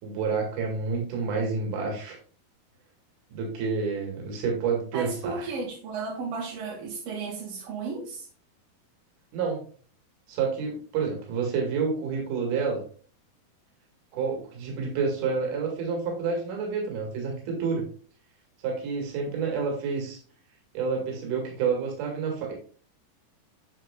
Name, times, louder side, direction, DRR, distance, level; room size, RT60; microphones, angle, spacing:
voice 1, 0.0-2.2 3.3-5.5 9.3-9.6 10.3-12.8 14.1-17.8 18.6-20.2 20.7-22.5, right 5 dB, 60° right, 0 dB, 3.4 m, -29 dB
voice 2, 4.9-8.3, right 4 dB, 85° right, -3 dB, 4.0 m, -34 dB
8.2 x 6.9 x 2.3 m, 0.42 s
omnidirectional pair, 4.3 m